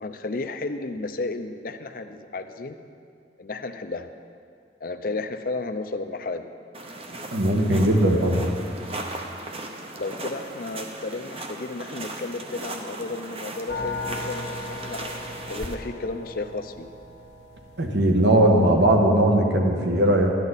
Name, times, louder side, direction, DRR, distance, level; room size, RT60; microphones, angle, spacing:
voice 1, 0.0-2.8 3.4-4.1 4.8-6.5 10.0-15.1 15.5-16.9, left 3 dB, 50° left, 8 dB, 0.6 m, -33 dB
sound 1, 6.7-15.8, right 2 dB, 30° right, 0.7 m, -37 dB
voice 2, 7.3-8.5 17.8-20.3, right 1 dB, 70° right, 1 dB, 1.3 m, -19 dB
sound 2, 13.7-18.7, left 2 dB, 75° left, 1.3 m, -36 dB
13.0 x 10.5 x 4.1 m, 2.3 s
head